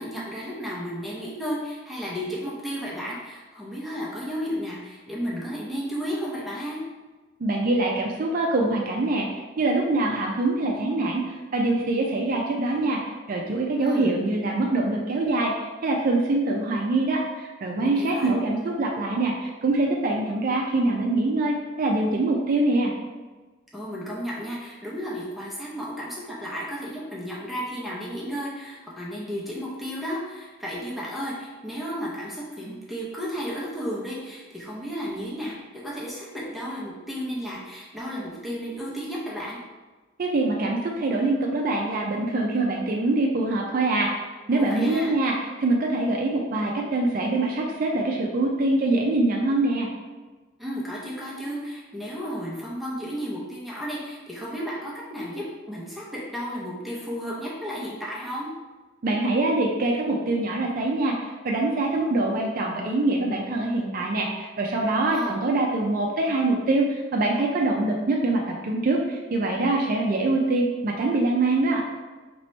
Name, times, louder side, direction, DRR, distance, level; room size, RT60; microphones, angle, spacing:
voice 1, 0.0-6.8 13.8-14.2 17.8-18.3 23.7-39.6 44.5-45.1 50.6-58.5 65.1-65.4, equal, ahead, -7 dB, 0.7 m, -33 dB
voice 2, 7.4-13.0 13.3-15.5 15.8-22.9 40.2-44.1 44.5-49.9 59.0-71.8, right 2 dB, 50° right, 0 dB, 0.4 m, -24 dB
3.0 x 2.9 x 4.3 m, 1.3 s
head